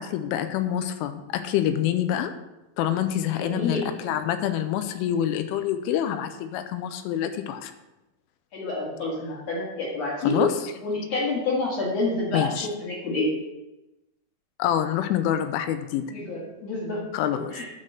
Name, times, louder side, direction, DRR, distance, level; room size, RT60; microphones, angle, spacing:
voice 1, 0.0-2.3 2.8-7.7 10.2-10.5 12.3-12.7 14.6-16.0 17.1-17.7, left 10 dB, 85° left, 9 dB, 3.1 m, -26 dB
voice 2, 3.3-3.9 8.5-10.4 10.8-13.3 16.1-17.0 17.3-17.7, left 2 dB, 55° left, -4 dB, 1.9 m, -28 dB
9.9 x 4.3 x 6.5 m, 1.0 s
omnidirectional pair, 5.7 m